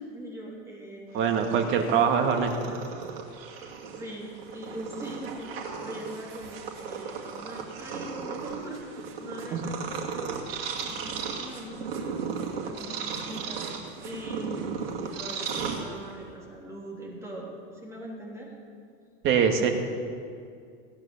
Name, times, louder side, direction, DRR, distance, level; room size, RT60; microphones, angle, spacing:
voice 1, 0.0-1.4 3.5-5.5 5.8-10.3 10.8-17.5 17.8-18.5, right 1 dB, 10° right, -4 dB, 3.4 m, -41 dB
voice 2, 1.1-2.8 9.5-9.6 19.2-19.7, right 7 dB, 45° right, 4 dB, 2.0 m, -23 dB
Purr, 1.2-16.3, right 6 dB, 85° right, 2.4 m, -36 dB
17.0 x 9.6 x 7.2 m, 2.3 s
supercardioid pair, 130°, 29 cm